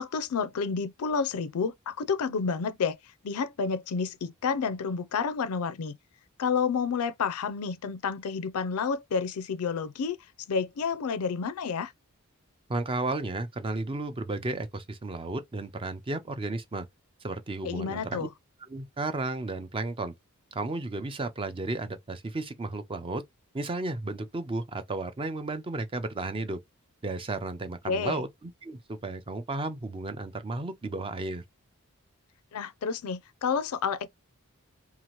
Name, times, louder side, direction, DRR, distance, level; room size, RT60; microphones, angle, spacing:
voice 1, 0.0-3.0 3.2-6.0 6.4-10.2 10.5-11.9 17.6-18.3 27.9-28.2 32.5-34.1, left 5 dB, 70° left, 0.4 m, -30 dB
voice 2, 12.7-16.9 17.2-18.3 18.7-20.1 20.5-23.2 23.5-26.6 27.0-31.4, right 2 dB, 25° right, 0.4 m, -33 dB
2.8 x 2.4 x 3.0 m
head